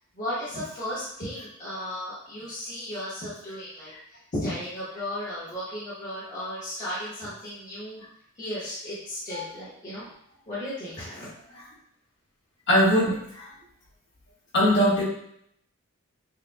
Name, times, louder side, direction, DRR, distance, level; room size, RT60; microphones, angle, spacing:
voice 1, 0.1-8.0 8.3-10.0 10.5-11.3, left 1 dB, 40° left, -10 dB, 1.1 m, -35 dB
voice 2, 12.7-13.5 14.5-15.0, equal, 55° left, -6 dB, 1.5 m, -21 dB
6.5 x 2.2 x 2.3 m, 0.72 s
head